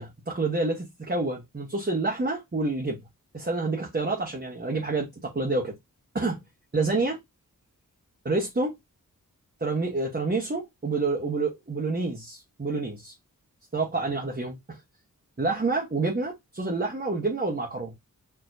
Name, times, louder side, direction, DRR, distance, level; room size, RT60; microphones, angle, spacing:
voice 1, 0.0-3.0 3.3-5.7 6.1-6.4 6.7-7.2 8.2-8.8 9.6-13.1 13.7-14.8 15.4-17.9, right 3 dB, 30° right, 1.1 m, -28 dB
4.6 x 2.9 x 2.6 m
wide cardioid pair, 65°, 36 cm